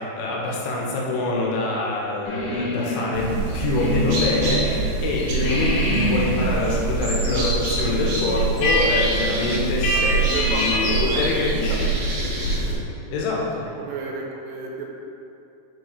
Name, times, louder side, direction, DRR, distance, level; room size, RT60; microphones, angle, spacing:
voice 1, 0.0-11.9 13.1-13.6, left 2 dB, 85° left, -3 dB, 3.3 m, -25 dB
sound 1, 2.2-4.7 5.0-11.2, left 2 dB, 65° left, 2.2 m, -27 dB
sound 2, 3.1-12.7, right 3 dB, 65° right, 2.9 m, -25 dB
voice 2, 9.9-12.7 13.8-14.8, right 3 dB, 85° right, -1 dB, 3.0 m, -33 dB
7.2 x 4.5 x 3.2 m, 2.7 s
omnidirectional pair, 5.6 m